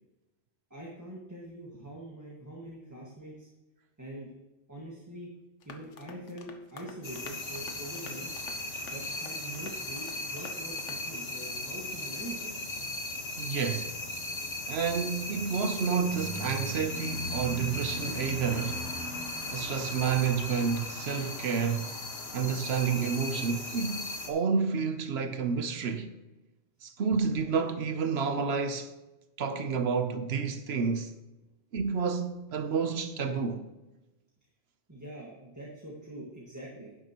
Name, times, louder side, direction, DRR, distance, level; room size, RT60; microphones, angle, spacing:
voice 1, 0.7-3.5 4.0-4.3 4.7-5.3 5.6-8.3 8.8-12.5 12.8-12.9 34.9-37.0, right 1 dB, 15° right, 1.6 m, -44 dB
sound 1, 5.6-11.1, left 4 dB, 70° left, 1.2 m, -50 dB
sound 2, 7.0-24.3, left 2 dB, 55° left, 1.7 m, -37 dB
voice 2, 13.4-13.9 14.7-18.9 19.5-21.9 22.3-26.1 26.8-28.9 29.4-31.1 31.7-33.6, right 6 dB, 60° right, 0.9 m, -30 dB
12.0 x 9.7 x 3.0 m
omnidirectional pair, 1.3 m